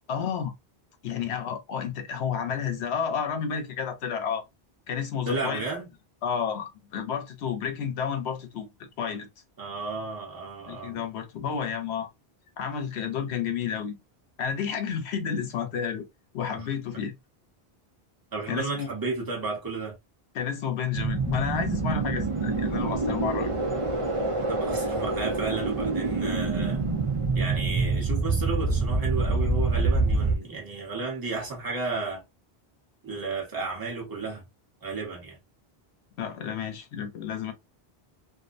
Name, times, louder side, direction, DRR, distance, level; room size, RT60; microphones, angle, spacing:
voice 1, 0.1-0.5 1.0-4.4 4.9-5.6 6.2-9.3 10.7-12.1 12.6-14.0 14.4-16.0 16.3-17.1 18.5-18.9 20.3-23.5 36.2-37.5, left 7 dB, 85° left, 0.9 m, -31 dB
voice 2, 5.3-5.9 9.6-11.0 16.5-16.7 18.3-19.9 24.5-26.9 27.3-32.2 33.0-34.4 34.8-35.4, right 3 dB, 20° right, 0.9 m, -33 dB
sound 1, 20.9-30.4, right 3 dB, 40° right, 0.5 m, -26 dB
2.5 x 2.1 x 2.4 m
omnidirectional pair, 1.1 m